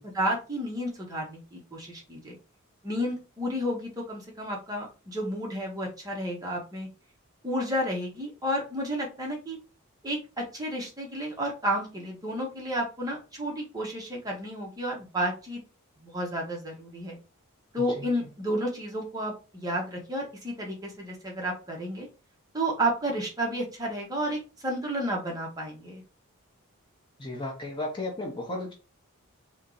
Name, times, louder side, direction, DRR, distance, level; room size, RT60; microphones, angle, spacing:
voice 1, 0.0-2.4 2.8-6.9 7.4-9.6 10.0-15.6 16.0-17.2 17.7-22.1 22.5-26.0, equal, 15° right, -1 dB, 0.9 m, -31 dB
voice 2, 27.2-28.7, left 2 dB, 20° left, 0 dB, 0.6 m, -34 dB
2.9 x 2.7 x 3.7 m, 0.32 s
head